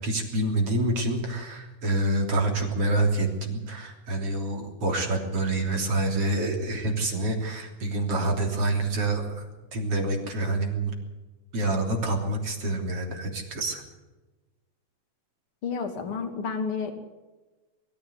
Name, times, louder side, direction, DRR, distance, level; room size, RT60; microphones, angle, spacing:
voice 1, 0.0-10.9 11.5-13.8, right 2 dB, 45° right, 2 dB, 4.2 m, -27 dB
voice 2, 15.6-16.9, left 5 dB, 45° left, 6 dB, 3.2 m, -30 dB
22.5 x 14.5 x 8.3 m, 1.2 s
omnidirectional pair, 3.6 m